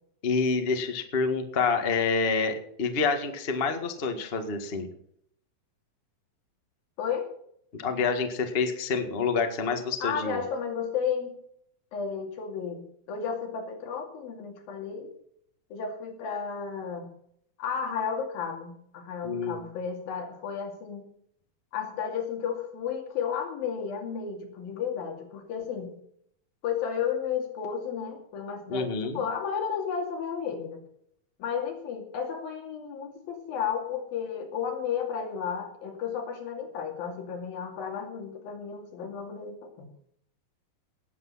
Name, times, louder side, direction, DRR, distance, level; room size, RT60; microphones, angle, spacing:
voice 1, 0.2-4.9 7.7-10.4 19.2-19.6 28.7-29.2, left 4 dB, 35° left, 6 dB, 0.9 m, -27 dB
voice 2, 7.0-7.3 10.0-11.3 11.9-15.1 15.7-17.1 17.6-21.0 21.7-25.9 26.6-30.8 31.4-39.9, left 7 dB, 80° left, 3 dB, 4.4 m, -33 dB
18.5 x 8.3 x 5.6 m, 0.69 s
omnidirectional pair, 4.1 m